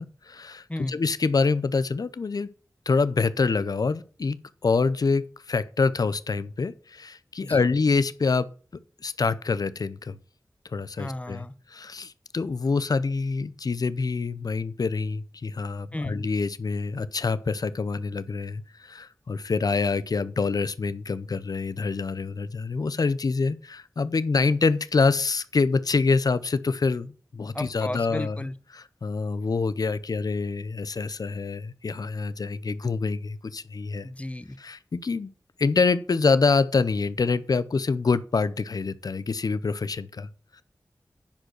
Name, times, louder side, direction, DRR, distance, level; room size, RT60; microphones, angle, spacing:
voice 1, 0.0-2.5 2.9-4.4 4.6-8.5 9.0-10.2 10.7-28.5 28.7-34.1 34.6-35.3 35.6-40.6, left 4 dB, 75° left, 0.7 m, -26 dB
voice 2, 11.0-11.5 15.9-16.2 27.5-28.6 34.0-34.6, left 1 dB, 20° left, 0.9 m, -34 dB
10.5 x 5.1 x 6.4 m
wide cardioid pair, 50°, 7 cm